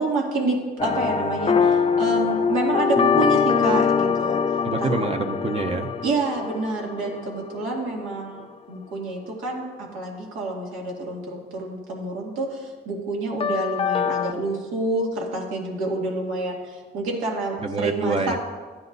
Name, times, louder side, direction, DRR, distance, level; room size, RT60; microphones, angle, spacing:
voice 1, 0.0-4.4 4.8-4.9 6.0-18.3, right 2 dB, 90° right, -2 dB, 2.3 m, -28 dB
sound 1, 0.8-8.0 13.4-14.3, left 6 dB, 30° left, 0.5 m, -23 dB
voice 2, 4.6-5.9 17.6-18.4, right 3 dB, 30° right, 5 dB, 0.7 m, -26 dB
14.5 x 9.8 x 2.7 m, 1.5 s
cardioid pair, 90°, 20 cm